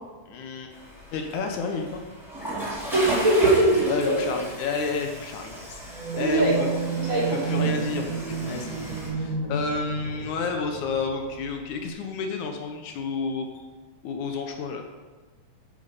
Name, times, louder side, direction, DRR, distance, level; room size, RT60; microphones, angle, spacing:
voice 1, 0.3-0.7 1.1-2.0 3.9-6.7 7.3-13.6 14.0-14.8, left 4 dB, 75° left, 4 dB, 2.3 m, -31 dB
Water / Toilet flush, 0.7-9.1, right 1 dB, ahead, 4.3 m, -35 dB
voice 2, 2.9-4.2 6.1-6.7 6.9-7.8, right 1 dB, 25° right, -6 dB, 3.7 m, -22 dB
sound 1, 5.9-11.9, right 5 dB, 50° right, 0.9 m, -31 dB
9.7 x 8.5 x 6.8 m, 1.3 s
omnidirectional pair, 3.6 m